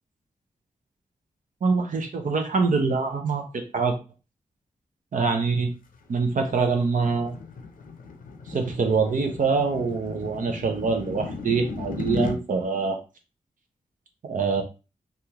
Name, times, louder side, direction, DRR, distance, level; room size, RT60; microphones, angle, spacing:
voice 1, 1.6-4.0 5.1-5.7 6.1-7.4 8.5-13.0 14.2-14.6, right 4 dB, 65° right, 4 dB, 0.7 m, -24 dB
sound 1, 5.9-12.4, left 3 dB, 75° left, 0.6 m, -36 dB
3.4 x 2.5 x 2.9 m, 0.31 s
cardioid pair, 45°, 14 cm